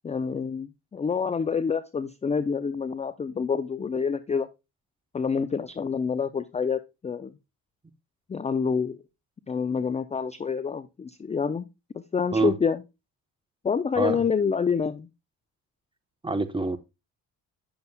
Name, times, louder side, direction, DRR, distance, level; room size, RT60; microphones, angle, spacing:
voice 1, 0.0-4.5 5.1-7.3 8.3-9.0 9.5-11.7 11.9-12.8 13.6-15.1, left 6 dB, 20° left, 0.4 m, -27 dB
voice 2, 16.2-16.8, right 3 dB, 15° right, 0.8 m, -25 dB
9.5 x 6.8 x 2.2 m
supercardioid pair, 65°, 39 cm